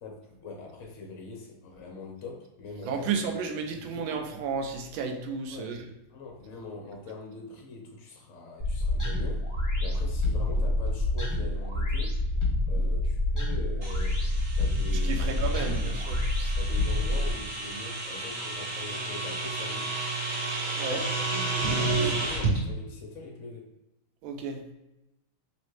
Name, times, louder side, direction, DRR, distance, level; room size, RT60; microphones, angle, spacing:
voice 1, 0.0-3.3 3.6-4.0 5.5-5.8 6.1-12.2 12.7-14.2 14.5-16.0 16.6-20.0 20.9-23.7, left 3 dB, 60° left, 0 dB, 0.8 m, -43 dB
voice 2, 2.9-5.9 15.0-16.2 20.7-21.0 24.2-24.6, right 5 dB, 75° right, 4 dB, 1.3 m, -32 dB
sound 1, 8.6-17.3, left 1 dB, 15° left, 0.8 m, -27 dB
sound 2, 13.8-22.6, right 3 dB, 35° right, 1.4 m, -32 dB
4.1 x 3.1 x 3.1 m, 0.96 s
omnidirectional pair, 2.3 m